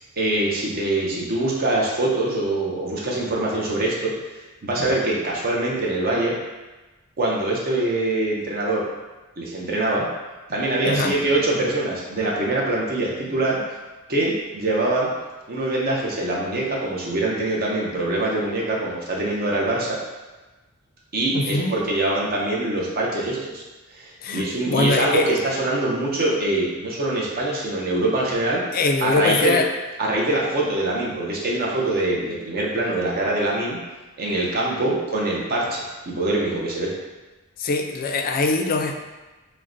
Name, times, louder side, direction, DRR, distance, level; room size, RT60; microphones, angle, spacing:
voice 1, 0.2-4.1 4.6-6.4 7.2-8.9 9.4-10.1 10.5-13.6 14.1-15.1 15.5-20.0 21.1-23.6 23.9-28.6 29.0-29.6 30.0-33.8 34.2-36.9, right 2 dB, 45° right, -3 dB, 0.6 m, -24 dB
voice 2, 10.8-11.1 21.3-21.7 24.2-25.3 28.7-29.7 37.6-38.9, left 3 dB, 40° left, 4 dB, 0.3 m, -22 dB
6.1 x 2.1 x 2.6 m, 1.2 s
head